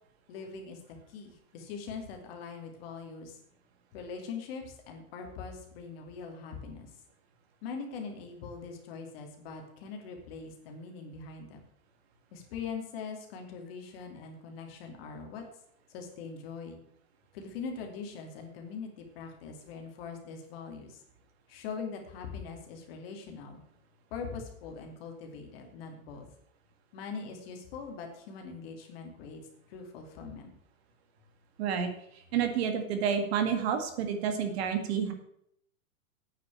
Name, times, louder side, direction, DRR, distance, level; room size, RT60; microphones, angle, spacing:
voice 1, 0.3-3.4 3.9-6.9 7.6-11.6 12.3-15.4 15.9-16.8 17.3-21.0 21.5-23.6 24.1-26.3 26.9-29.4 29.7-30.5, left 5 dB, 45° left, 3 dB, 2.8 m, -42 dB
voice 2, 31.6-31.9 32.3-35.1, right 7 dB, 50° right, 6 dB, 1.9 m, -29 dB
9.2 x 6.7 x 8.6 m, 0.73 s
supercardioid pair, 165°, 41 cm